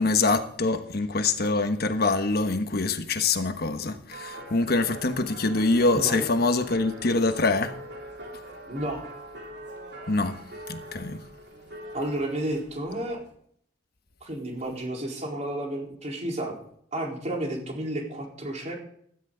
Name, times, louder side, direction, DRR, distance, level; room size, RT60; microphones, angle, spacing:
voice 1, 0.0-7.7 10.1-10.4 10.7-11.2, left 3 dB, 55° left, 1.1 m, -24 dB
sound 1, 4.1-13.3, right 1 dB, 65° right, 3.3 m, -42 dB
voice 2, 5.9-6.3 8.7-9.0 11.9-13.2 14.2-16.6 16.9-18.8, right 1 dB, 40° right, 3.9 m, -31 dB
16.5 x 12.5 x 3.9 m
head